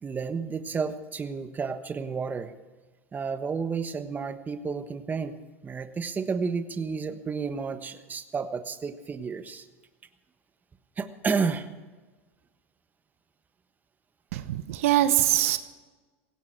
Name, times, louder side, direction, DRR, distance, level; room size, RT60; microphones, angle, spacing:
voice 1, 0.0-2.5 3.1-5.3 5.6-9.6 11.0-11.7, right 5 dB, 25° right, 10 dB, 1.3 m, -31 dB
voice 2, 14.3-15.6, right 13 dB, 75° right, 11 dB, 1.0 m, -23 dB
17.0 x 17.0 x 4.7 m, 1.3 s
hypercardioid pair, 95°, 7 cm